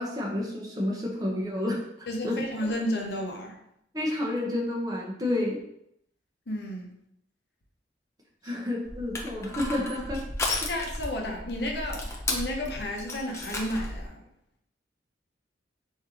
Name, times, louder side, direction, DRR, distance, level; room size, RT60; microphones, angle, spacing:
voice 1, 0.0-2.4 3.9-5.6 8.4-10.3 10.6-10.7, left 1 dB, 20° right, -3 dB, 0.8 m, -30 dB
voice 2, 2.1-3.6 6.5-6.9 8.4-8.6 10.7-14.2, left 1 dB, 65° left, 1 dB, 0.8 m, -32 dB
Crushing, 8.8-14.1, left 2 dB, 15° left, 0.5 m, -34 dB
4.5 x 2.7 x 3.7 m, 0.76 s
head